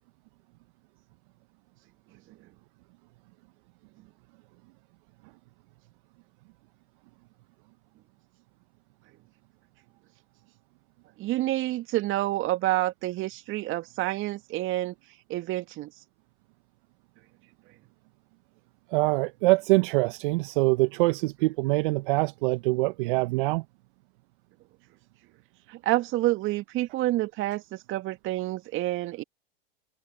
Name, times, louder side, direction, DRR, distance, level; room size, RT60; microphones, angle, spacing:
voice 1, 11.2-14.9 15.3-15.9 25.7-29.2, right 16 dB, 40° right, 2.2 m, -28 dB
voice 2, 18.9-23.6, right 24 dB, 55° right, 1.1 m, -24 dB
hypercardioid pair, 100°, 30 cm